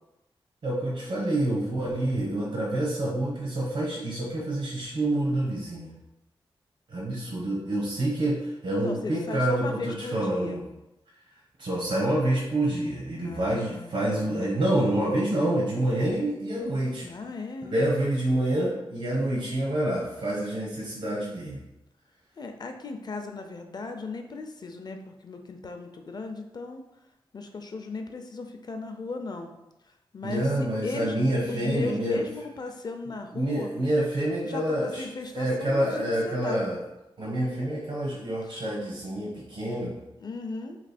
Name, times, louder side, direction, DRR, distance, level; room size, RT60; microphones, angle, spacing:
voice 1, 0.6-5.9 6.9-10.6 11.6-17.1 17.6-21.6 30.2-32.2 33.3-35.0 35.3-36.8 37.2-40.0, right 1 dB, 85° right, -5 dB, 1.0 m, -27 dB
voice 2, 8.8-10.6 13.2-14.4 17.0-17.8 22.4-26.8 27.3-29.5 30.1-30.5 30.8-31.2 31.5-33.7 34.4-36.6 38.4-38.5 40.2-40.8, left 3 dB, 45° left, 5 dB, 0.5 m, -36 dB
3.2 x 3.0 x 4.2 m, 0.92 s
wide cardioid pair, 85°, 10 cm